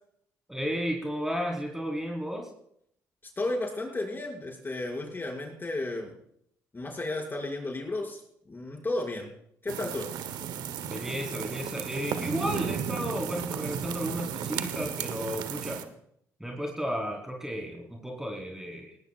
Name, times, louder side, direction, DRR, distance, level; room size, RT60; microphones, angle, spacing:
voice 1, 0.5-2.5 10.9-15.8 16.4-19.0, equal, 5° right, -1 dB, 3.6 m, -33 dB
voice 2, 3.4-6.1 6.7-8.2 8.5-9.3 9.6-10.1, left 2 dB, 30° left, -1 dB, 6.1 m, -33 dB
sound 1, 9.7-15.8, right 8 dB, 75° right, 1.2 m, -34 dB
19.0 x 18.5 x 2.5 m, 0.72 s
supercardioid pair, 60°, 7 cm